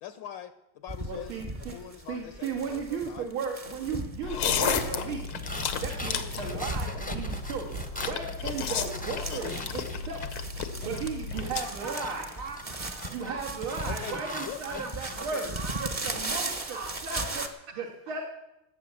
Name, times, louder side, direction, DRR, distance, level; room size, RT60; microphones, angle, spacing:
voice 1, 0.0-3.3 3.8-4.0 4.5-4.6 4.9-5.1 6.9-7.2 13.8-14.8 15.2-15.5, left 11 dB, 70° left, 12 dB, 1.3 m, -43 dB
sound 1, 0.9-17.5, right 2 dB, 30° right, 0.7 m, -38 dB
voice 2, 1.1-1.8 2.1-5.2 5.8-10.3 10.8-12.2 13.1-15.5 15.8-16.8 17.0-17.5 17.8-18.3, right 5 dB, 85° right, -3 dB, 2.6 m, -35 dB
sound 2, 4.2-11.6, left 7 dB, 85° left, 1.9 m, -33 dB
sound 3, 5.2-10.5 10.8-15.5, left 1 dB, 10° left, 0.5 m, -42 dB
voice 3, 11.6-16.1 16.4-17.8, right 4 dB, 70° right, 0 dB, 2.0 m, -42 dB
18.5 x 8.3 x 6.9 m, 0.89 s
omnidirectional pair, 2.3 m